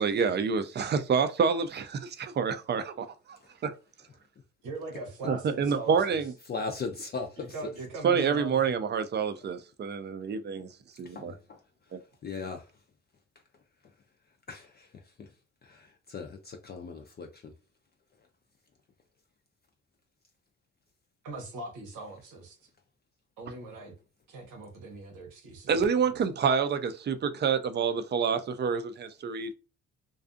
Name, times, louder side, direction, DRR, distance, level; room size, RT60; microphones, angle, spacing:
voice 1, 0.0-3.4 3.6-3.7 5.3-6.3 8.0-10.7 11.0-11.3 11.9-12.0 25.7-29.5, right 6 dB, 35° right, 0.4 m, -28 dB
voice 2, 4.6-6.2 7.1-8.7 21.2-22.6 23.4-23.9 24.3-25.8 26.1-26.2, right 2 dB, 85° right, 1.0 m, -41 dB
voice 3, 6.5-7.7 11.0-11.6 12.2-12.7 14.5-15.3 15.6-17.5, left 4 dB, 35° left, 0.4 m, -38 dB
2.5 x 2.3 x 2.4 m
cardioid pair, 90°, 30 cm